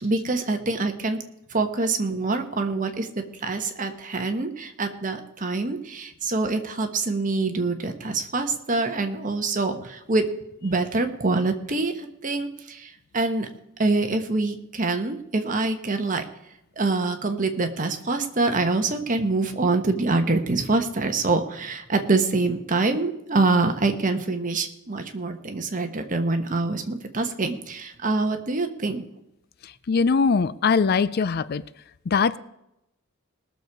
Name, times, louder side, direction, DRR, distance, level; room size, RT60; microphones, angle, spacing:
voice 1, 0.0-1.2 1.5-10.3 10.6-13.5 13.8-16.2 16.8-29.0, right 3 dB, 40° right, 1.2 m, -25 dB
voice 2, 29.9-31.6 32.1-32.4, left 5 dB, 45° left, 0.4 m, -21 dB
20.0 x 6.9 x 4.8 m
head